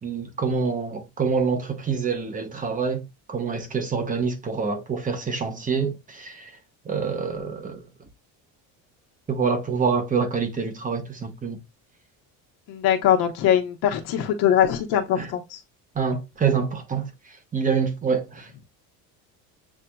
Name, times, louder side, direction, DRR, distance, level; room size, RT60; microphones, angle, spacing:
voice 1, 0.0-6.5 6.8-7.8 9.3-11.6 15.2-15.3 15.9-17.1 17.5-18.5, right 5 dB, 20° right, 1.1 m, -26 dB
voice 2, 12.7-15.6, left 10 dB, 75° left, 1.1 m, -22 dB
8.2 x 2.7 x 2.3 m
cardioid pair, 140°, 39 cm